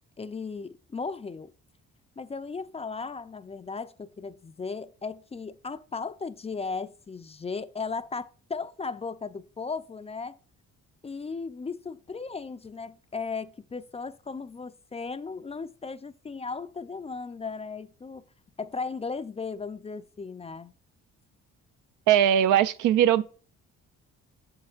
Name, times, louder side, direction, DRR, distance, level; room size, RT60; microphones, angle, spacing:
voice 1, 0.2-1.5 2.2-10.4 11.0-18.2 18.6-20.7, left 4 dB, 20° left, 0.4 m, -36 dB
voice 2, 22.1-23.2, right 10 dB, 80° right, 0.5 m, -20 dB
7.7 x 6.9 x 2.4 m
cardioid pair, 90°, 30 cm